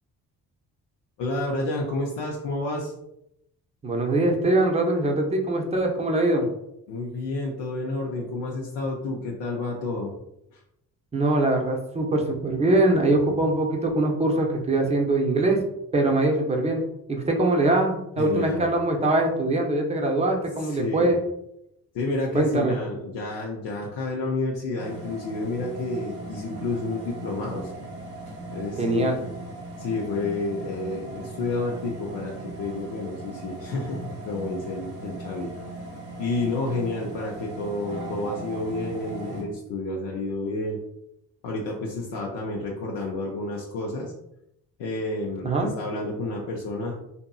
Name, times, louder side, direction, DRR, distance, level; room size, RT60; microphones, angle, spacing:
voice 1, 1.2-2.9 6.9-10.1 10.5-10.6 18.2-18.7 20.6-21.2 21.9-27.7 28.5-29.1 29.8-35.5 36.2-40.8 41.4-44.1 44.8-46.9, left 2 dB, 75° left, -1 dB, 0.6 m, -30 dB
voice 2, 3.8-6.5 11.1-15.6 15.9-16.8 17.1-21.2 22.3-22.8 28.8-29.2 45.4-45.7, right 2 dB, 15° right, 1 dB, 0.6 m, -22 dB
sound 1, 24.8-39.4, right 2 dB, 80° right, 1.0 m, -38 dB
2.7 x 2.5 x 2.3 m, 0.81 s
supercardioid pair, 55°, 43 cm